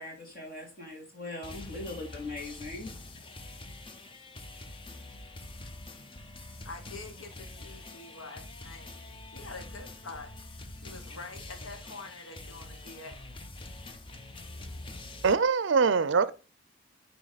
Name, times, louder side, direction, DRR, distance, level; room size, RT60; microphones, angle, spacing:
voice 1, 0.0-2.9, left 2 dB, 45° left, 3.2 m, -40 dB
sound 1, 1.4-15.3, left 2 dB, 25° left, 0.6 m, -45 dB
voice 2, 6.6-8.9 9.3-10.3 10.7-13.2, left 3 dB, 85° left, 1.2 m, -45 dB
voice 3, 15.2-16.3, right 5 dB, 60° right, 0.5 m, -23 dB
9.2 x 4.1 x 4.0 m
head